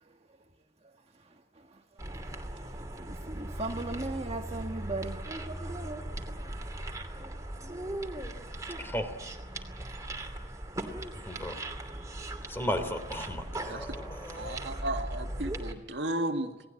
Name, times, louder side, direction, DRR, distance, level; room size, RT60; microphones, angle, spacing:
sound 1, 2.0-15.7, right 1 dB, 20° right, 2.7 m, -39 dB
voice 1, 3.0-5.2, right 2 dB, 35° right, 3 dB, 1.5 m, -36 dB
voice 2, 12.5-14.6, equal, 15° left, 8 dB, 3.1 m, -35 dB
voice 3, 14.4-16.6, right 1 dB, 85° right, 4 dB, 2.0 m, -34 dB
28.0 x 18.5 x 9.0 m, 1.1 s
head